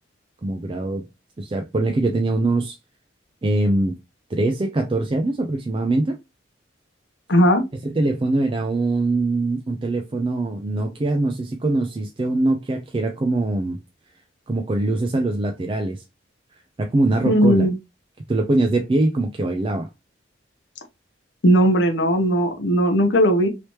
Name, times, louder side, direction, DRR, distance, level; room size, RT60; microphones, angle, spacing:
voice 1, 0.4-1.1 1.4-2.8 3.4-4.0 4.3-6.2 7.8-13.8 14.5-16.0 16.8-17.7 18.3-19.9, right 2 dB, 25° right, 0.3 m, -22 dB
voice 2, 7.3-7.6 17.3-17.7 21.4-23.5, equal, 65° left, 0.8 m, -17 dB
3.2 x 2.9 x 2.9 m
head